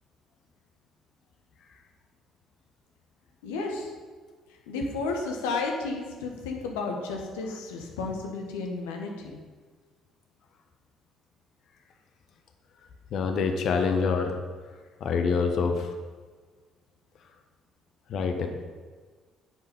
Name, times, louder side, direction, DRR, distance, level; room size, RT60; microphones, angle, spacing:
voice 1, 3.4-3.9 4.7-9.3, left 3 dB, 75° left, 1 dB, 1.6 m, -32 dB
voice 2, 13.1-14.4 15.0-15.9 18.1-18.5, left 5 dB, 55° left, 5 dB, 1.3 m, -26 dB
10.0 x 7.7 x 5.4 m, 1.5 s
figure-of-eight pair, 50°, 0 cm